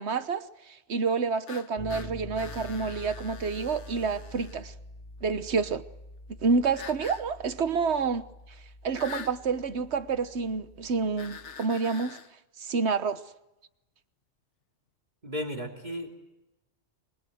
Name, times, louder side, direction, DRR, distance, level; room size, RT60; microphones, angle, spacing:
voice 1, 0.0-4.7 5.2-5.8 6.4-8.2 8.8-12.2 12.6-13.2, right 5 dB, 75° right, 1.4 m, -28 dB
sound 1, 1.5-4.6 6.7-7.2 8.9-9.4 11.2-12.3, left 7 dB, 90° left, 1.5 m, -44 dB
sound 2, 1.8-11.6, equal, 45° left, 3.8 m, -46 dB
voice 2, 15.2-16.1, equal, 40° right, 3.4 m, -34 dB
25.5 x 24.0 x 7.9 m
omnidirectional pair, 1.2 m